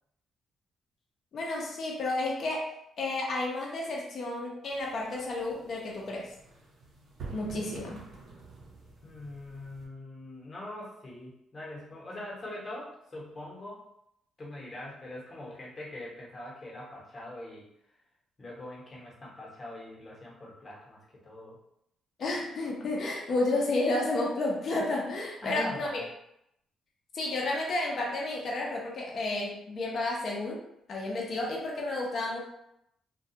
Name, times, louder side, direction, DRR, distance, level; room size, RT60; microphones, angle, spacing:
voice 1, 1.3-2.7 3.0-6.3 7.3-8.0 22.2-25.9 27.1-30.6 30.9-32.4, left 2 dB, 55° left, -2 dB, 0.6 m, -31 dB
sound 1, 4.7-9.8, right 4 dB, 70° right, 0.8 m, -47 dB
voice 2, 9.0-13.8 14.4-17.7 18.4-21.6 25.4-26.1, left 1 dB, 30° left, -4 dB, 0.9 m, -42 dB
2.3 x 2.3 x 2.7 m, 0.78 s
cardioid pair, 90°, 0 cm